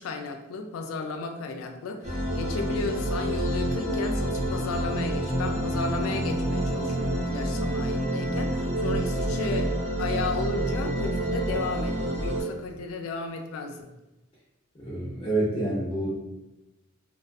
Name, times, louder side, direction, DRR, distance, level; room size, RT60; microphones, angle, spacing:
voice 1, 0.0-13.8, left 3 dB, 75° left, 5 dB, 0.3 m, -33 dB
Ambience Peaceful Synth, 2.0-12.4, right 1 dB, 35° right, 0.6 m, -28 dB
voice 2, 14.7-16.2, right 2 dB, 25° left, -7 dB, 0.6 m, -28 dB
2.4 x 2.3 x 2.3 m, 0.98 s
head